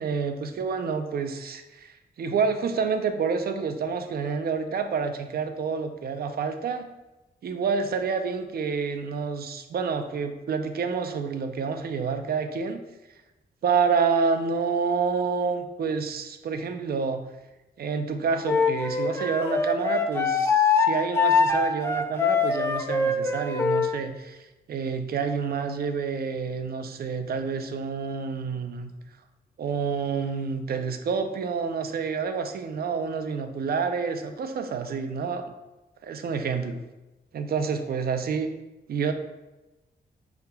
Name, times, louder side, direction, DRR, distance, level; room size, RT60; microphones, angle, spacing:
voice 1, 0.0-6.9 7.4-12.8 13.6-17.2 17.8-28.9 29.6-35.5 36.0-36.8 37.3-38.5 38.9-39.1, right 5 dB, 60° right, 7 dB, 0.4 m, -28 dB
Wind instrument woodwind instrument, 18.5-23.9, left 5 dB, 15° left, 0.4 m, -23 dB
5.8 x 3.4 x 2.2 m, 1.0 s
wide cardioid pair, 145°, 18 cm